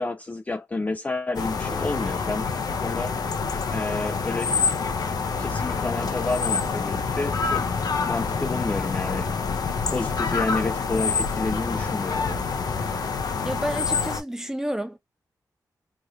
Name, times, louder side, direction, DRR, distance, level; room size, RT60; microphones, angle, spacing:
voice 1, 0.0-2.5 2.8-3.1 3.7-4.6 5.4-7.6 8.1-9.3 9.9-12.4, left 3 dB, 20° left, 0.3 m, -29 dB
sound 1, 1.3-14.2, left 5 dB, 70° left, 0.7 m, -27 dB
voice 2, 13.4-15.0, equal, 5° right, 0.8 m, -30 dB
3.2 x 2.5 x 3.0 m
wide cardioid pair, 85°, 7 cm